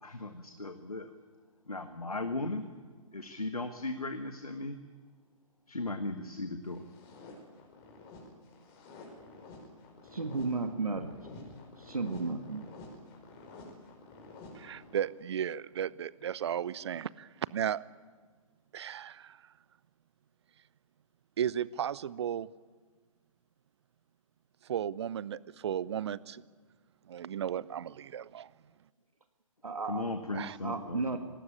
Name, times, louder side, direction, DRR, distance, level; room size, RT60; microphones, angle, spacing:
voice 1, 0.0-1.1 1.7-2.6 3.1-4.8 5.7-6.9 29.9-31.2, left 2 dB, 90° left, 7 dB, 1.6 m, -37 dB
sound 1, 6.7-15.3, left 2 dB, 25° left, 5.2 m, -50 dB
voice 2, 10.1-11.1 11.9-12.7 29.6-30.1 30.6-31.2, right 3 dB, 80° right, 6 dB, 1.7 m, -33 dB
voice 3, 14.5-17.8 18.7-19.4 21.4-22.5 24.6-26.4 27.1-28.5 30.3-30.6, right 9 dB, 50° right, 21 dB, 0.7 m, -35 dB
19.0 x 18.0 x 10.0 m, 1.5 s
figure-of-eight pair, 130°, 18 cm